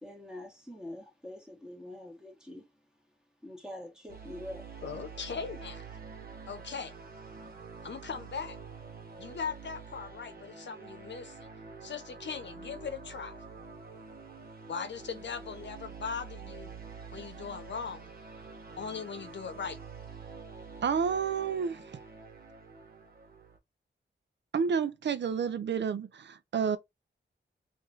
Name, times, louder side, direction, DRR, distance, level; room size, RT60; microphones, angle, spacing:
voice 1, 0.0-2.7 3.4-4.7, left 1 dB, 5° right, 1.4 m, -45 dB
sound 1, 4.1-23.6, right 5 dB, 50° right, 1.0 m, -47 dB
voice 2, 4.8-5.8 6.5-6.9 7.8-8.6 9.2-11.5 11.8-13.3 14.7-16.7 17.1-18.1 18.8-19.8, left 6 dB, 70° left, 0.8 m, -39 dB
voice 3, 20.8-22.0 24.5-26.8, right 6 dB, 65° right, 0.4 m, -30 dB
3.0 x 2.6 x 3.6 m
wide cardioid pair, 95°, 19 cm